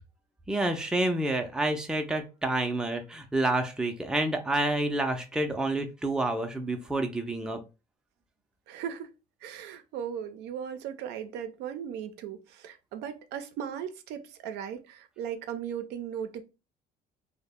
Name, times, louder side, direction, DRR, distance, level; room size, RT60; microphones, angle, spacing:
voice 1, 0.5-7.6, right 1 dB, 5° right, 0.4 m, -28 dB
voice 2, 8.7-9.1 9.4-16.4, right 8 dB, 85° right, 0.4 m, -37 dB
2.0 x 2.0 x 3.4 m
cardioid pair, 110°, 17 cm